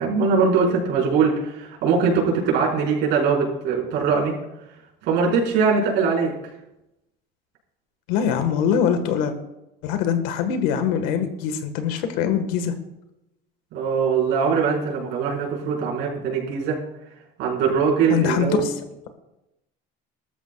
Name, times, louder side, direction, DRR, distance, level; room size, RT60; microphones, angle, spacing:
voice 1, 0.0-4.3 5.0-6.3 13.7-16.8 17.4-18.7, right 5 dB, 60° right, -3 dB, 4.9 m, -21 dB
voice 2, 8.1-9.3 9.8-12.7 18.1-18.7, left 8 dB, 85° left, 8 dB, 1.6 m, -23 dB
20.5 x 13.5 x 2.4 m, 0.90 s
cardioid pair, 170°, 20 cm